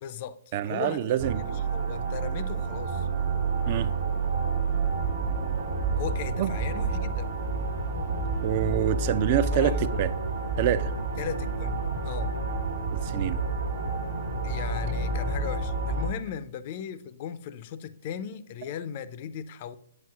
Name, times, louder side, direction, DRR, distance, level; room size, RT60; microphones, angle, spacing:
voice 1, 0.0-0.4 0.7-3.1 5.9-7.3 9.5-9.8 11.2-11.8 12.0-12.4 14.4-19.8, left 9 dB, 40° left, 0.4 m, -37 dB
voice 2, 0.5-1.6 3.7-3.9 6.4-6.5 8.4-10.1 10.6-10.9 12.9-13.4, right 11 dB, 40° right, 0.4 m, -26 dB
sound 1, 1.2-16.1, right 3 dB, 70° right, 1.3 m, -29 dB
7.7 x 7.2 x 2.3 m
hypercardioid pair, 130°, 0 cm